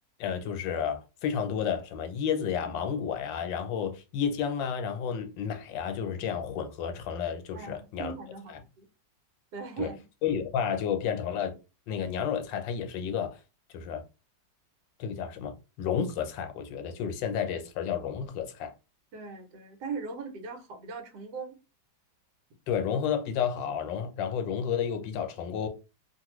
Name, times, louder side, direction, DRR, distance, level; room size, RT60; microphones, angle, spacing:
voice 1, 0.2-8.1 9.8-9.9 10.2-11.6 11.9-13.4 13.7-14.0 15.0-18.7 22.7-25.7, left 7 dB, 85° left, 1.4 m, -31 dB
voice 2, 7.5-8.9 9.5-10.0 19.1-21.6, right 5 dB, 70° right, 1.3 m, -39 dB
2.8 x 2.6 x 3.0 m
omnidirectional pair, 2.0 m